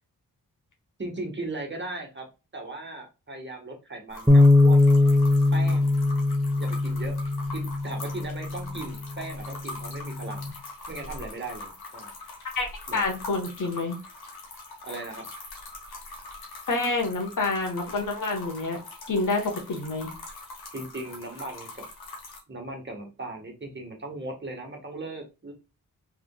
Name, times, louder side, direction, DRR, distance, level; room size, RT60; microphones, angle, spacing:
voice 1, 1.0-2.3 2.5-4.8 5.5-5.9 6.6-7.2 7.5-10.5 10.9-12.1 12.9-13.0 14.8-15.3 20.7-21.8 22.5-25.5, right 2 dB, 30° right, 1.4 m, -37 dB
sound 1, 4.1-22.4, left 2 dB, 80° left, 1.3 m, -43 dB
Bass guitar, 4.3-10.5, left 2 dB, 5° right, 0.7 m, -22 dB
voice 2, 12.5-14.0 16.7-18.8 19.1-20.1, left 3 dB, 55° left, 1.2 m, -28 dB
3.5 x 3.3 x 2.3 m
cardioid pair, 45°, 37 cm